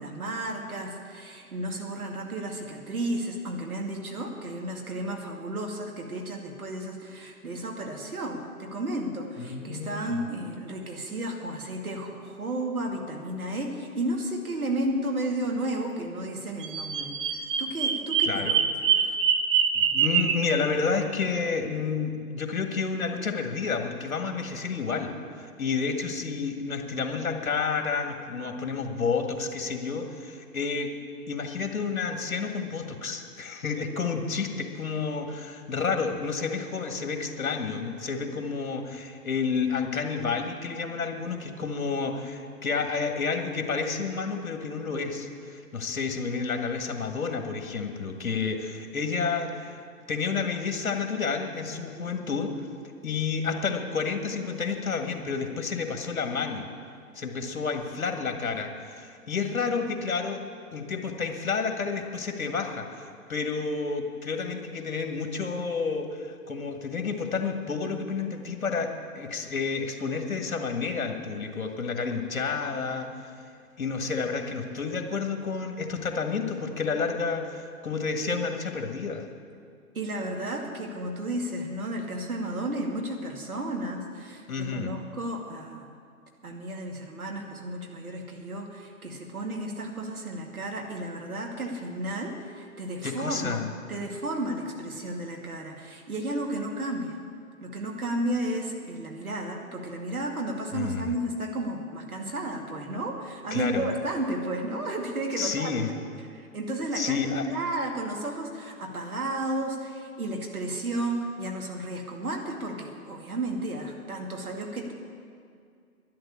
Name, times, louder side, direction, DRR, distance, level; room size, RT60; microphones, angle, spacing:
voice 1, 0.0-18.5 18.9-19.2 79.9-85.9 86.4-93.6 93.9-97.2 97.6-105.8 106.3-114.9, right 1 dB, 75° right, 1 dB, 2.5 m, -33 dB
voice 2, 9.4-10.2 18.2-18.6 19.7-30.9 31.3-49.8 50.1-52.7 53.0-56.7 57.2-60.5 60.7-73.1 73.8-79.2 84.5-84.9 93.0-93.7 100.7-101.1 103.5-103.9 105.4-105.9 106.9-107.5, left 5 dB, 65° left, 5 dB, 1.9 m, -30 dB
Bird vocalization bird call bird song, 16.6-20.4, right 7 dB, 35° right, 1.2 m, -24 dB
11.5 x 11.0 x 8.4 m, 2.3 s
figure-of-eight pair, 120°, 44 cm